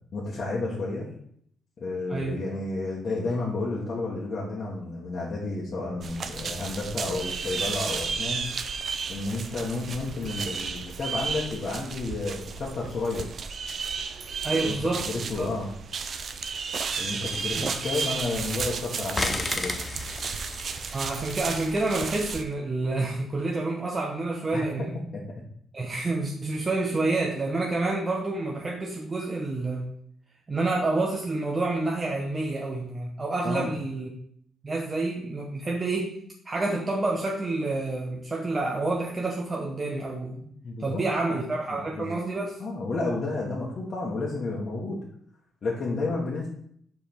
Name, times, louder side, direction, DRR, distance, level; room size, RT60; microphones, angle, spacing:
voice 1, 0.1-1.1 1.8-8.5 9.1-13.2 14.5-15.7 17.0-19.7 24.5-24.9 25.1-25.2 33.4-33.7 40.3-41.0 41.7-42.1 42.6-45.0 45.6-46.5, left 3 dB, 45° left, -6 dB, 1.4 m, -31 dB
voice 2, 2.1-2.4 14.4-15.1 15.4-15.5 17.5-17.9 20.9-24.9 25.7-29.9 30.5-34.1 34.6-36.2 36.5-40.3 40.8-42.6, right 2 dB, 30° right, -1 dB, 0.8 m, -28 dB
sound 1, 6.0-22.4, right 5 dB, 50° right, 0.5 m, -33 dB
sound 2, 17.3-18.7 19.1-22.4, left 3 dB, 25° left, 0.6 m, -35 dB
5.1 x 4.6 x 4.5 m, 0.66 s
cardioid pair, 90°, 0 cm